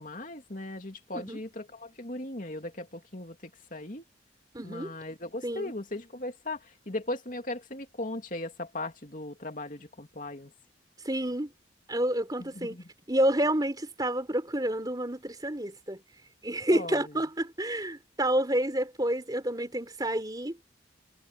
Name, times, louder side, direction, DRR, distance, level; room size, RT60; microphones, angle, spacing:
voice 1, 0.0-4.1 4.6-10.5 12.4-12.9 16.7-17.2, left 2 dB, 45° left, 3.0 m, -38 dB
voice 2, 4.5-4.9 5.4-5.7 11.0-11.5 11.9-12.8 13.1-16.0 16.4-20.6, right 1 dB, 20° right, 3.9 m, -29 dB
head